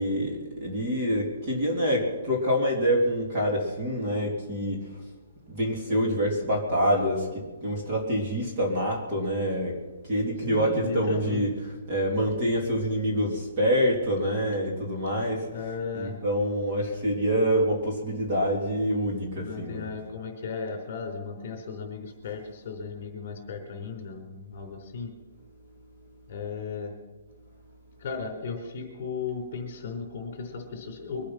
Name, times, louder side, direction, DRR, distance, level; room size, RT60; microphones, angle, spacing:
voice 1, 0.0-4.9 5.5-9.8 10.0-19.9, equal, 25° right, -2 dB, 3.0 m, -26 dB
voice 2, 10.5-11.4 15.5-16.2 19.4-25.1 26.3-26.9 28.0-31.3, left 5 dB, 35° left, 3 dB, 4.1 m, -35 dB
23.5 x 8.6 x 5.9 m, 1.2 s
hypercardioid pair, 175°, 0 cm